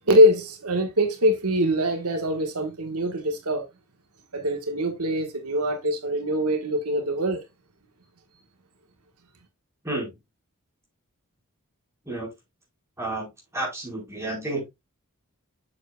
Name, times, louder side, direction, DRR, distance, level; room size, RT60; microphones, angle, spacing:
voice 1, 0.1-3.7 4.3-7.4, equal, 90° right, 1.5 m, -23 dB
voice 2, 13.5-14.7, right 2 dB, 10° right, 4.5 m, -30 dB
7.7 x 7.1 x 2.3 m
head